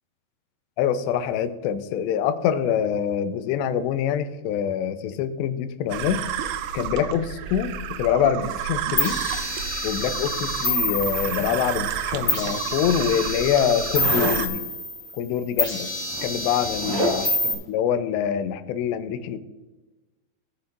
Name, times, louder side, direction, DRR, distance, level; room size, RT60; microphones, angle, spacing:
voice 1, 0.8-6.2 6.7-9.2 9.8-14.6 15.1-15.9 16.2-19.4, left 9 dB, 90° left, 11 dB, 2.9 m, -25 dB
sound 1, 5.9-14.5, right 9 dB, 90° right, 2.8 m, -31 dB
sound 2, 9.0-11.9 12.3-15.2 15.6-17.5, left 2 dB, 25° left, 3.2 m, -28 dB
Zipper (clothing), 11.0-12.6 13.9-14.4 15.6-15.7 16.0-17.4, right 1 dB, 55° right, 2.2 m, -31 dB
17.5 x 7.0 x 2.6 m, 1.1 s
omnidirectional pair, 4.8 m